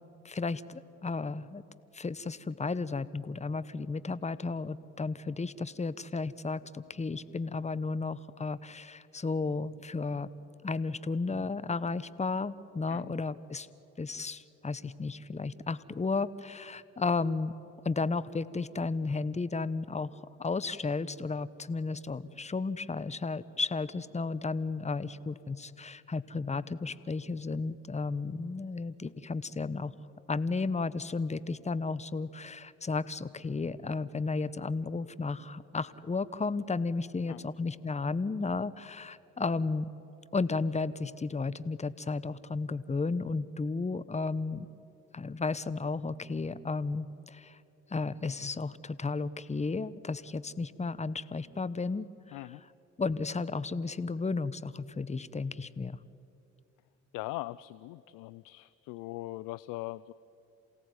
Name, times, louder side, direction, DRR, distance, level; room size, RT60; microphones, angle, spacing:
voice 1, 0.2-1.6 1.9-10.3 10.6-13.7 14.0-17.5 17.8-29.9 30.3-39.9 40.3-44.7 45.1-47.6 47.9-52.5 53.0-56.0, left 4 dB, 20° left, 16 dB, 1.0 m, -33 dB
voice 2, 52.3-52.6 57.1-60.1, left 19 dB, 80° left, 18 dB, 0.5 m, -40 dB
28.0 x 17.5 x 9.6 m, 2.8 s
hypercardioid pair, 50°, 33 cm